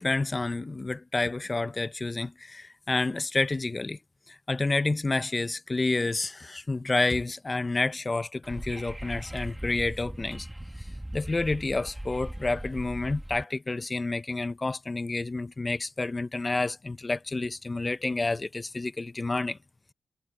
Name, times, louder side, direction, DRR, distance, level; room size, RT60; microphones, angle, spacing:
voice 1, 0.0-4.0 4.3-10.5 10.8-10.9 11.1-19.6, left 3 dB, 25° left, 0.6 m, -29 dB
Wind / Subway metro underground, 8.4-13.4, right 1 dB, 5° right, 1.4 m, -39 dB
wide cardioid pair, 120°, 0 cm